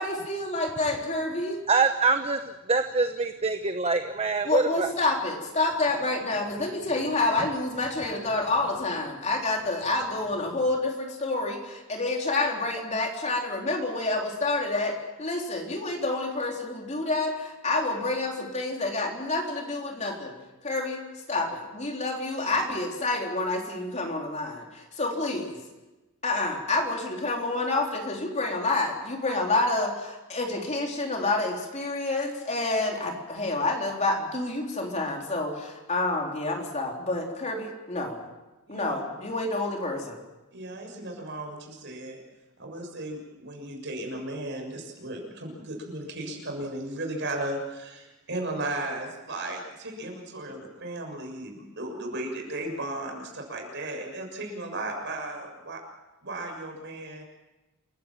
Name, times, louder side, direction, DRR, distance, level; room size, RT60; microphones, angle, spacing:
voice 1, 0.0-1.6 4.4-20.3 20.6-21.0 21.3-25.6 26.2-38.3 38.7-40.2, left 2 dB, 35° left, 1 dB, 3.8 m, -28 dB
voice 2, 1.7-4.9, right 4 dB, 30° right, 7 dB, 1.0 m, -25 dB
voice 3, 40.5-42.2 42.6-55.8 56.2-57.2, right 1 dB, 55° right, 2 dB, 6.8 m, -35 dB
28.5 x 16.0 x 7.6 m, 1.1 s
head